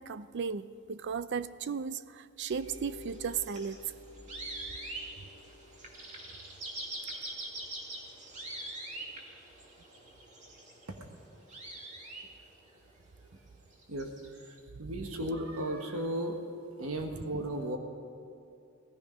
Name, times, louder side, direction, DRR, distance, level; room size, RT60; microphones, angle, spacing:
voice 1, 0.0-3.8 14.9-15.1 17.2-17.3, right 6 dB, 55° right, 15 dB, 0.5 m, -36 dB
sound 1, 2.5-12.8 13.7-14.6, right 1 dB, 35° right, 2.1 m, -44 dB
voice 2, 14.8-16.4 16.8-17.8, right 1 dB, 85° right, 4 dB, 1.4 m, -34 dB
17.5 x 14.5 x 5.2 m, 2.6 s
head